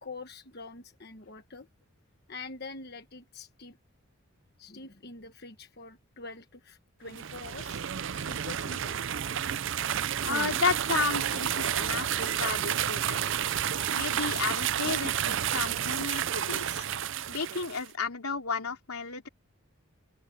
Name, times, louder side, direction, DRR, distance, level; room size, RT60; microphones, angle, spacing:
voice 1, 0.0-1.7 2.3-3.8 4.6-7.8 8.1-9.0, left 3 dB, 45° left, 1.3 m, -45 dB
sound 1, 7.1-17.9, right 9 dB, 55° right, 0.5 m, -30 dB
voice 2, 10.2-13.2 13.9-16.9 17.3-19.3, left 5 dB, 85° left, 3.2 m, -32 dB
open air
head